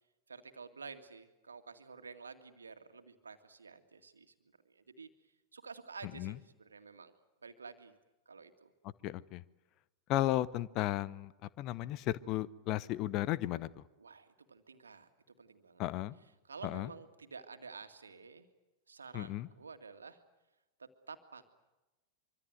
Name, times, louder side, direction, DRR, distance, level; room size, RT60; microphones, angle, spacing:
voice 1, 0.3-4.3 4.7-5.1 5.5-7.1 7.4-8.0 8.3-8.7 14.0-15.8 16.4-18.5 18.9-20.2 20.8-21.5, right 5 dB, 75° right, 8 dB, 2.1 m, -51 dB
voice 2, 9.0-9.4 10.1-11.3 11.6-13.8 15.8-16.2 16.6-16.9 19.1-19.5, left 15 dB, 40° left, 19 dB, 0.9 m, -34 dB
25.0 x 25.0 x 8.0 m, 1.0 s
figure-of-eight pair, 90°, 0 cm